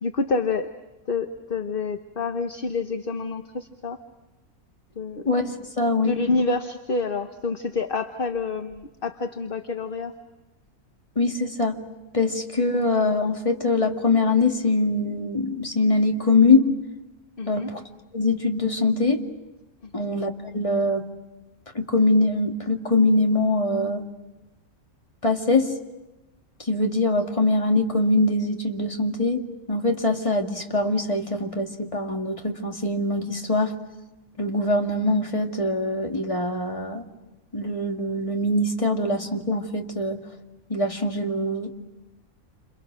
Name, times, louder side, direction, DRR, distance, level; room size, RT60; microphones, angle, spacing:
voice 1, 0.0-0.7 1.1-4.0 5.0-5.2 6.0-10.2 17.4-17.7 19.8-20.1, left 3 dB, 40° left, 7 dB, 1.1 m, -28 dB
voice 2, 5.3-6.1 11.2-11.8 12.1-16.7 17.5-17.8 18.1-19.2 19.9-21.1 21.7-24.0 25.2-25.7 26.7-29.4 29.7-33.7 34.4-37.0 37.5-40.2 40.7-41.7, left 2 dB, 20° left, 2 dB, 2.2 m, -23 dB
29.5 x 28.0 x 6.3 m, 1.0 s
omnidirectional pair, 1.5 m